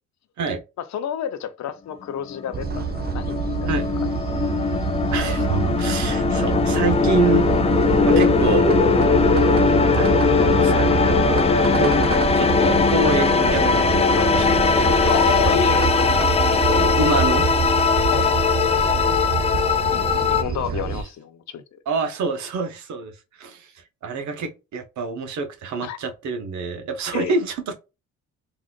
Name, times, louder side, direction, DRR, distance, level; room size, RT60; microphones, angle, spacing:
voice 1, 0.8-3.7 15.1-16.2 18.1-18.3 19.9-21.6 25.8-26.0 27.1-27.3, left 9 dB, 65° left, 0.6 m, -29 dB
sound 1, 2.1-20.4, left 5 dB, 20° left, 0.3 m, -20 dB
sound 2, 2.5-21.0, right 7 dB, 35° right, 0.5 m, -26 dB
voice 2, 5.1-7.5 8.0-8.7 9.9-11.5 11.7-11.9 12.3-15.4 16.7-17.5 20.7-20.8 21.9-23.1 23.4-27.7, right 3 dB, 70° right, 0.8 m, -26 dB
sound 3, 6.0-17.5, left 2 dB, ahead, 1.3 m, -27 dB
3.8 x 2.4 x 2.3 m
cardioid pair, 90°, 30 cm